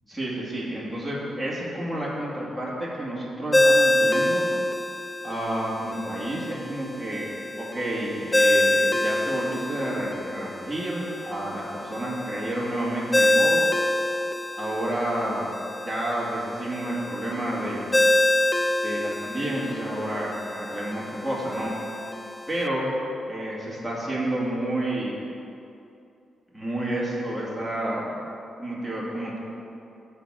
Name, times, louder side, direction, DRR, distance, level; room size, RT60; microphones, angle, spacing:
voice 1, 0.1-4.5 5.2-7.3 7.6-13.7 14.6-15.5 15.8-18.0 18.8-21.8 22.5-23.0 23.3-25.2 26.5-28.0 28.6-29.4, right 1 dB, ahead, -6 dB, 2.4 m, -30 dB
Ringtone, 3.5-22.7, left 1 dB, 20° left, 0.4 m, -26 dB
11.5 x 4.1 x 7.5 m, 2.7 s
cardioid pair, 110°, 0 cm